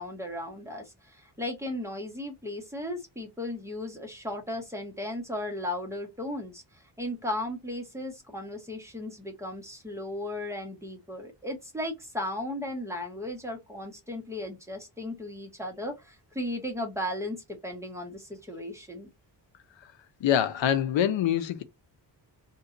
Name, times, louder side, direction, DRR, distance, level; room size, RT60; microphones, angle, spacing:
voice 1, 0.0-19.1, left 1 dB, 5° right, 0.7 m, -36 dB
voice 2, 20.2-21.6, left 10 dB, 85° left, 0.6 m, -25 dB
2.7 x 2.2 x 3.7 m
wide cardioid pair, 175°, 44 cm